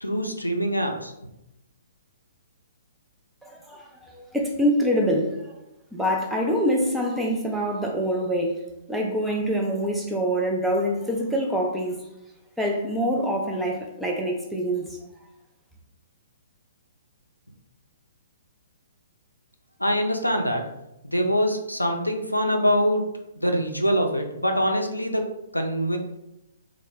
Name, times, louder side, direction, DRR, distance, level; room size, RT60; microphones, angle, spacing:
voice 1, 0.0-1.1 19.8-20.6 21.0-23.1 23.4-26.0, equal, 90° left, 4 dB, 0.4 m, -24 dB
voice 2, 3.4-5.5 5.9-8.6 8.9-12.0 12.6-15.0, equal, 5° right, -1 dB, 0.4 m, -25 dB
2.1 x 2.1 x 3.1 m, 0.87 s
figure-of-eight pair, 120°, 0 cm